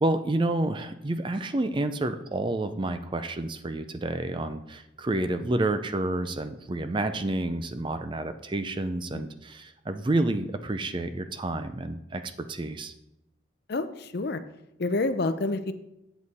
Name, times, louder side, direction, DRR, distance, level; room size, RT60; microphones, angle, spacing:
voice 1, 0.0-12.2 12.5-12.9, right 2 dB, 25° right, 10 dB, 0.4 m, -29 dB
voice 2, 13.7-14.4 14.8-15.7, left 2 dB, 50° left, 11 dB, 0.5 m, -28 dB
8.0 x 7.4 x 4.2 m, 0.88 s
head